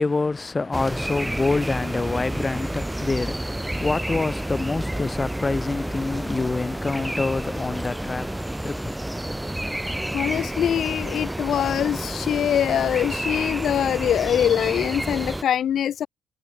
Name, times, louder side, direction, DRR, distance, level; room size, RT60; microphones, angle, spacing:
voice 1, 0.0-10.1, left 3 dB, 25° left, 0.7 m, -27 dB
sound 1, 0.7-15.4, right 1 dB, 5° right, 1.4 m, -30 dB
voice 2, 10.1-16.1, left 10 dB, 65° left, 0.5 m, -23 dB
cardioid pair, 90°, 0 cm